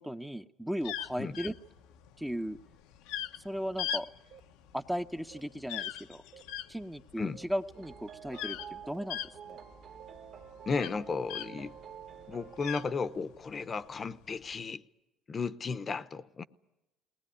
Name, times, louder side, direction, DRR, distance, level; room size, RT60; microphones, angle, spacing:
voice 1, 0.0-1.5 2.2-2.6 3.4-4.1 4.7-6.2 6.7-9.2 9.5-9.6, equal, 5° right, 0.7 m, -36 dB
sound 1, 0.8-11.8 12.1-13.5 14.2-14.5, left 10 dB, 90° left, 1.0 m, -39 dB
sound 2, 4.3-4.4 5.3-5.4 6.3-6.4 7.3-7.4 8.3-8.4 8.9-9.0 9.5-9.6 10.0-13.2, right 8 dB, 70° right, 1.6 m, -53 dB
sound 3, 7.7-13.0, right 8 dB, 50° right, 1.9 m, -50 dB
voice 2, 10.7-11.8 12.3-14.8 15.3-16.4, left 4 dB, 30° left, 0.8 m, -34 dB
20.0 x 19.5 x 9.8 m
cardioid pair, 115°, 0 cm